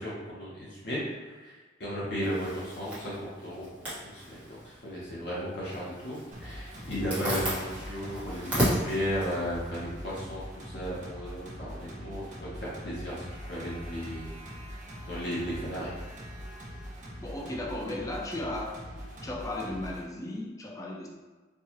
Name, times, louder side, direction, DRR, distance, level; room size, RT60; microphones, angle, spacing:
voice 1, 0.0-14.3 15.1-15.9, equal, 65° left, -8 dB, 0.9 m, -35 dB
Zipper (clothing), 2.2-10.4, right 1 dB, 10° right, 1.1 m, -35 dB
sound 1, 6.3-20.0, equal, 40° right, 0.9 m, -43 dB
voice 2, 17.2-18.8 19.2-21.1, left 1 dB, 15° left, -1 dB, 0.4 m, -35 dB
4.6 x 2.4 x 2.9 m, 1.3 s
head